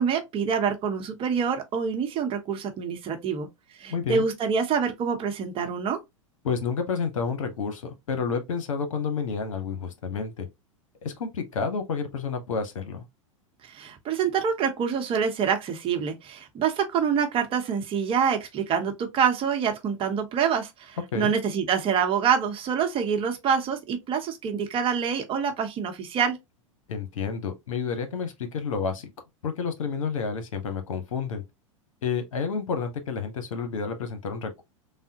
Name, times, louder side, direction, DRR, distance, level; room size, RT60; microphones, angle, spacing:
voice 1, 0.0-3.5 3.8-6.0 13.6-26.4, right 7 dB, 30° right, 0.8 m, -26 dB
voice 2, 3.9-4.2 6.4-10.5 11.0-13.0 21.1-21.3 26.9-29.1 29.4-31.4 32.0-34.6, left 5 dB, 75° left, 0.9 m, -30 dB
3.4 x 2.1 x 2.8 m
hypercardioid pair, 100°, 17 cm